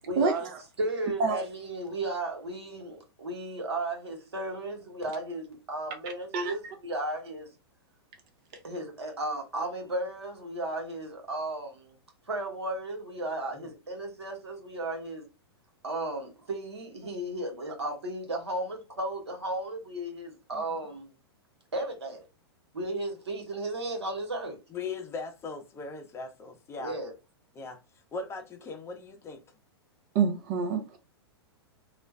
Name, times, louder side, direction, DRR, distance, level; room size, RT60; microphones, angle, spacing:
voice 1, 0.0-0.5 0.8-7.5 8.6-11.9 12.3-15.3 15.8-21.1 21.7-22.2 22.7-24.6 26.8-27.1, right 1 dB, 90° right, 1.1 m, -34 dB
voice 2, 24.7-27.0 27.5-27.8 28.1-29.4, left 4 dB, 20° left, 0.7 m, -39 dB
voice 3, 30.1-31.0, right 5 dB, 50° right, 0.7 m, -26 dB
2.5 x 2.2 x 3.2 m
hypercardioid pair, 110°, 14 cm